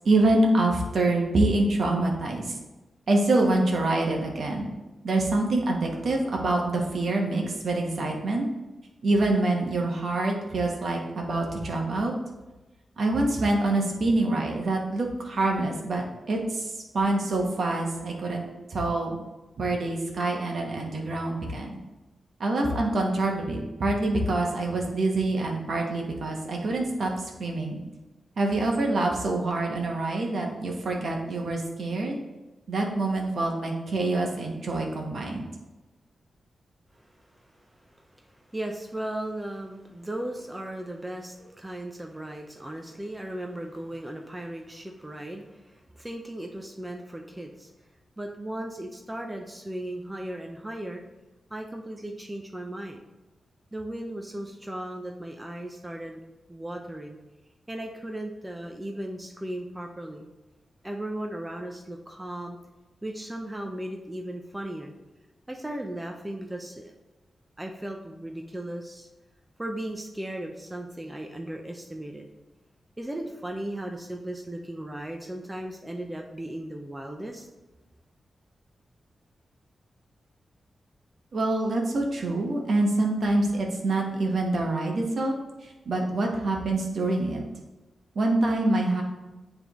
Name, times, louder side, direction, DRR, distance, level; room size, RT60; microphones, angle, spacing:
voice 1, 0.0-2.5 3.1-4.7 5.0-8.4 9.0-12.1 13.0-19.2 19.6-21.8 22.4-27.1 27.4-27.8 28.4-32.1 32.7-35.4 81.3-85.3 85.6-87.4 88.1-89.0, right 2 dB, 60° right, 1 dB, 1.1 m, -26 dB
voice 2, 36.9-47.7 48.2-51.0 51.5-53.0 53.7-56.2 56.5-57.2 57.7-60.3 60.8-62.6 63.0-64.9 65.5-66.9 67.6-69.1 69.6-72.3 73.0-77.5, right 1 dB, 10° right, 2 dB, 0.5 m, -36 dB
9.2 x 3.4 x 3.0 m, 1.1 s
wide cardioid pair, 125°, 0 cm